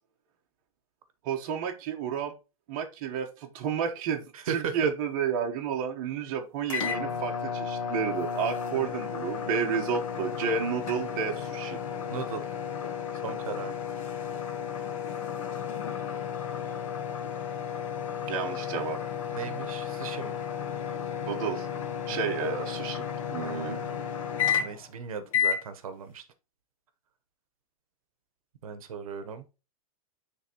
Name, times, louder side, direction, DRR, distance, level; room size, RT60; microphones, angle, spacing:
voice 1, 1.2-2.3 2.7-11.8 18.3-19.0 21.3-21.7 22.1-23.8, right 7 dB, 35° right, 1.0 m, -31 dB
voice 2, 4.3-4.9 12.1-12.5 13.2-13.8 19.3-20.3 22.1-22.2 23.4-23.9 24.6-26.2 28.6-29.4, right 6 dB, 70° right, 0.9 m, -36 dB
sound 1, 6.7-24.9 25.3-25.6, left 7 dB, 60° left, 1.1 m, -33 dB
9.5 x 3.4 x 2.9 m
supercardioid pair, 170°, 19 cm